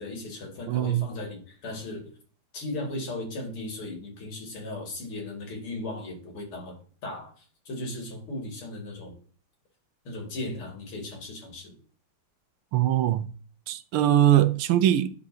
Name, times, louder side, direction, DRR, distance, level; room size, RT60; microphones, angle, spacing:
voice 1, 0.0-2.1 2.5-9.2 10.0-11.8, left 2 dB, 80° left, 3.0 m, -37 dB
voice 2, 0.7-1.0 12.7-13.3 13.7-15.1, right 12 dB, 85° right, 1.5 m, -21 dB
11.5 x 4.2 x 2.7 m
omnidirectional pair, 2.3 m